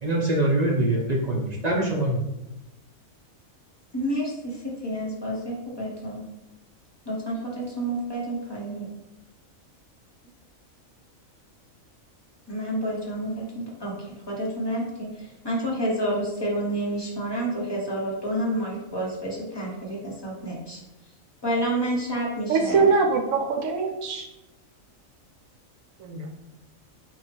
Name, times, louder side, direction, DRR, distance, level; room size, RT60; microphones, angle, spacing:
voice 1, 0.0-2.2, right 1 dB, 45° right, -3 dB, 0.5 m, -24 dB
voice 2, 3.9-6.2 7.0-8.9 12.5-13.9 14.3-20.8 21.4-22.9, right 1 dB, 20° left, -4 dB, 0.9 m, -29 dB
voice 3, 22.5-24.3 26.0-26.4, right 4 dB, 75° right, 3 dB, 1.0 m, -23 dB
4.4 x 2.4 x 4.3 m, 0.94 s
omnidirectional pair, 1.5 m